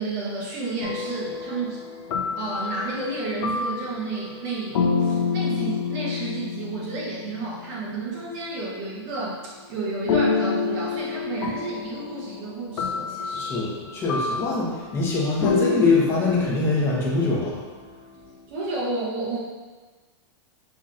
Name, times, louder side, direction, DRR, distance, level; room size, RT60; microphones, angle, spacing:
voice 1, 0.0-1.8 2.4-13.5 18.5-19.4, right 3 dB, 40° right, -5 dB, 1.0 m, -31 dB
sound 1, 0.8-7.9 10.1-17.7, left 5 dB, 85° left, 0.6 m, -28 dB
voice 2, 13.3-17.6, left 3 dB, 15° left, -6 dB, 1.0 m, -23 dB
5.6 x 3.0 x 2.5 m, 1.3 s
supercardioid pair, 155°, 15 cm